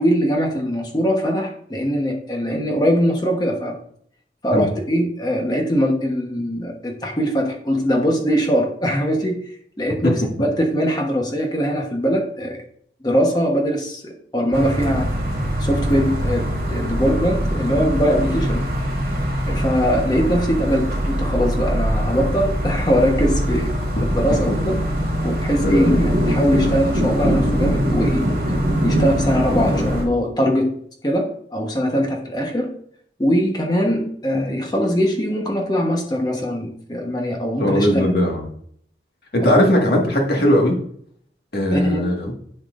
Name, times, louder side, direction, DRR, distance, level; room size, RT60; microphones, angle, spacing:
voice 1, 0.0-3.8 4.4-9.4 9.8-12.6 13.0-15.1 15.6-18.7 19.5-23.7 24.0-24.7 25.2-28.2 28.8-30.7 31.0-32.7 33.2-38.1 39.4-39.5 41.7-42.0, equal, 25° left, 1 dB, 1.1 m, -21 dB
sound 1, 14.5-30.0, equal, 55° right, 2.4 m, -22 dB
voice 2, 25.6-26.0 37.6-38.5 39.3-40.7 41.5-42.3, equal, 65° left, 0 dB, 1.8 m, -18 dB
10.0 x 5.9 x 2.5 m, 0.63 s
head